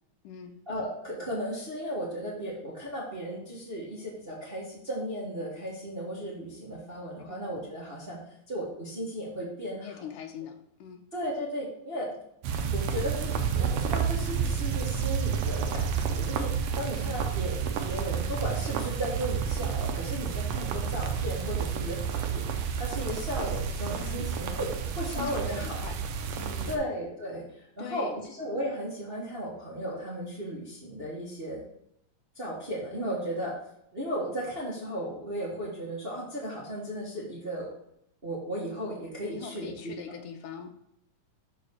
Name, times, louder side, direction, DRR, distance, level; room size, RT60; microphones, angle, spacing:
voice 1, 0.7-10.0 11.1-12.1 12.7-17.5 17.8-24.7 25.0-25.8 26.7-31.6 32.3-33.5 33.9-37.7 38.2-39.9, equal, 25° right, -5 dB, 1.3 m, -35 dB
voice 2, 9.8-11.0 17.0-17.3 24.0-24.3 25.1-25.9 26.4-26.8 27.8-28.2 39.2-40.8, left 8 dB, 80° left, 5 dB, 2.3 m, -42 dB
sound 1, 12.4-26.8, right 7 dB, 80° right, 1.4 m, -30 dB
5.5 x 5.1 x 6.5 m, 0.76 s
omnidirectional pair, 3.8 m